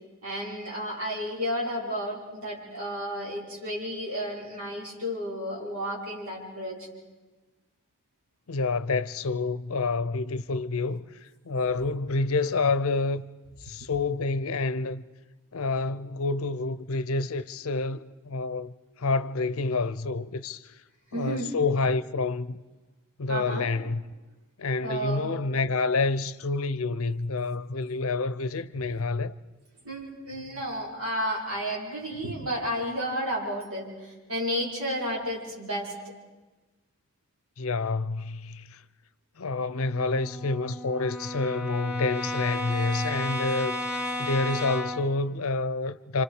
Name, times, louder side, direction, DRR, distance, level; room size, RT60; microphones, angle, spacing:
voice 1, 0.2-6.9 13.8-13.9 21.1-21.5 23.3-23.7 24.8-25.3 29.8-35.9, equal, 75° right, 5.4 m, -32 dB
voice 2, 8.5-13.2 13.6-15.0 15.5-18.7 19.0-20.7 21.1-22.6 23.2-24.0 24.6-29.3 37.6-38.8 39.4-43.8 44.2-46.2, left 3 dB, 70° left, 0.6 m, -28 dB
Brass instrument, 39.6-45.1, left 1 dB, 5° right, 1.4 m, -33 dB
28.5 x 26.0 x 4.9 m
head